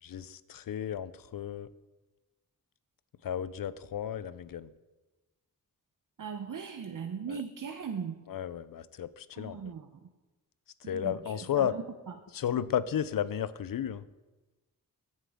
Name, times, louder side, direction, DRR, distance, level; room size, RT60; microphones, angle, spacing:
voice 1, 0.0-1.7 3.2-4.7 7.3-7.4 8.3-9.7 10.8-11.7 12.3-14.1, left 9 dB, 70° left, 16 dB, 0.5 m, -33 dB
voice 2, 6.2-8.2 9.3-10.1 10.8-11.8, right 6 dB, 65° right, 5 dB, 0.7 m, -39 dB
15.5 x 7.5 x 3.6 m, 1.1 s
wide cardioid pair, 95°, 35 cm